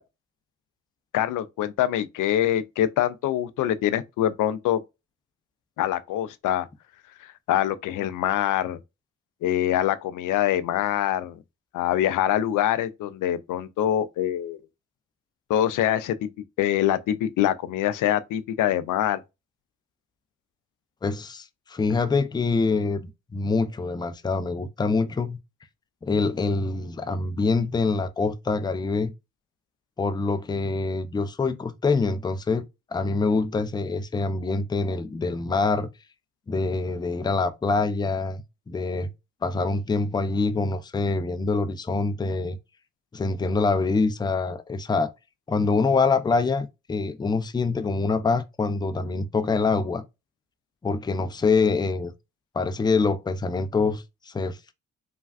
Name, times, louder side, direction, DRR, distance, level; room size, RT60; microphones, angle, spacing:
voice 1, 1.1-4.8 5.8-6.7 7.2-8.8 9.4-11.4 11.7-14.6 15.5-16.3 16.6-19.2, left 11 dB, 65° left, 0.5 m, -24 dB
voice 2, 21.0-23.0 23.3-25.4 26.0-29.1 30.0-32.6 32.9-35.9 36.5-39.1 39.4-42.6 43.1-45.1 45.5-50.0 50.8-52.1 52.5-54.6, left 4 dB, 15° left, 0.4 m, -25 dB
3.3 x 2.3 x 2.4 m
supercardioid pair, 55°, 34 cm